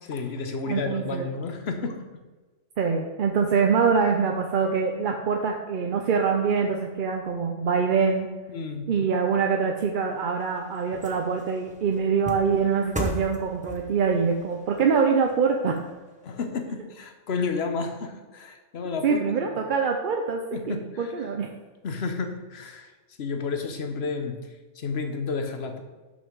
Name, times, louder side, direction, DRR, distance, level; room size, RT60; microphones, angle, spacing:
voice 1, 0.0-2.0 8.5-8.9 16.2-19.6 20.5-21.3 21.8-22.9 23.2-24.5 24.7-25.8, left 4 dB, 60° left, 6 dB, 1.1 m, -31 dB
voice 2, 0.7-1.3 2.8-8.3 8.9-15.8 19.0-21.5, right 5 dB, 50° right, 2 dB, 0.7 m, -24 dB
sound 1, 10.0-16.5 16.9-17.0, left 1 dB, 5° right, 0.9 m, -39 dB
6.2 x 5.5 x 6.1 m, 1.3 s
omnidirectional pair, 1.2 m